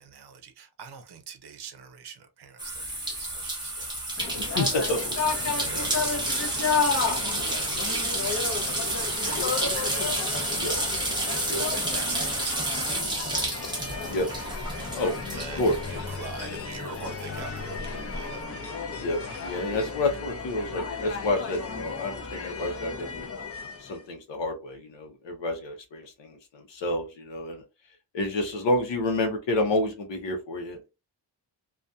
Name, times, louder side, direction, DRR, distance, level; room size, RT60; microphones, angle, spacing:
voice 1, 0.0-3.9 5.4-10.0 10.6-11.0 11.7-13.2 13.9-14.4 14.8-18.6, right 5 dB, 65° right, 0.6 m, -44 dB
sound 1, 2.6-16.6 16.9-18.2, right 1 dB, 10° right, 0.7 m, -30 dB
sound 2, 4.2-24.0, left 5 dB, 35° left, 0.5 m, -33 dB
voice 2, 4.4-5.1 7.0-7.1 9.2-9.4 10.6-10.8 11.5-11.7 14.1-14.3 14.9-15.1 15.6-15.8 18.0-18.1 19.0-23.3 23.8-27.6 28.1-30.9, left 2 dB, 90° left, 0.8 m, -29 dB
2.6 x 2.3 x 2.2 m
wide cardioid pair, 160°, 42 cm